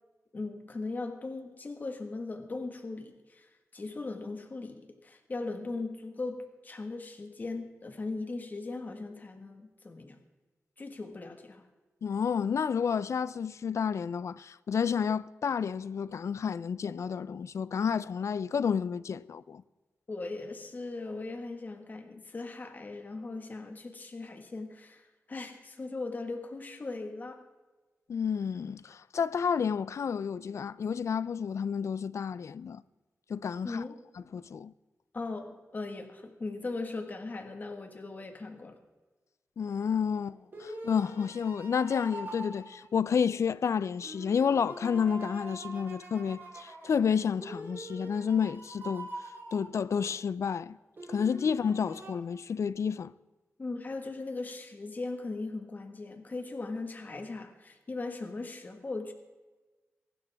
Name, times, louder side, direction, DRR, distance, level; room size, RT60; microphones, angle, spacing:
voice 1, 0.3-10.2 10.8-11.7 20.1-27.4 33.6-34.0 35.1-38.8 53.6-59.1, left 3 dB, 35° left, 1.6 m, -39 dB
voice 2, 12.0-19.6 28.1-32.8 33.3-33.8 34.3-34.7 39.6-49.1 49.5-50.8 51.1-53.1, left 7 dB, 70° left, 0.4 m, -30 dB
sound 1, 40.0-43.5 44.0-50.2 51.0-52.1, right 2 dB, 45° right, 3.6 m, -45 dB
22.5 x 12.0 x 3.5 m
wide cardioid pair, 170°, 5 cm